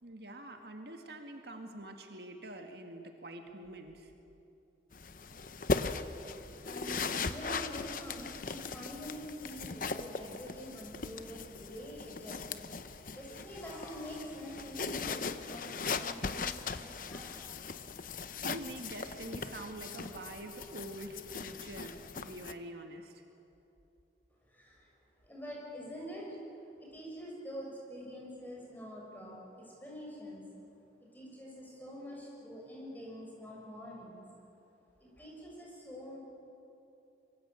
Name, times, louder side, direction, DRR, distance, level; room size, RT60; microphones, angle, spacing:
voice 1, 0.0-4.1 18.4-23.2, right 1 dB, 65° right, 4 dB, 1.9 m, -45 dB
sound 1, 4.9-22.5, left 4 dB, 50° left, 0.9 m, -39 dB
voice 2, 6.6-17.5 24.5-24.9 25.2-26.4 26.8-30.4 31.0-34.3 35.0-36.2, equal, 10° left, -3 dB, 6.9 m, -46 dB
25.5 x 23.5 x 8.2 m, 2.8 s
head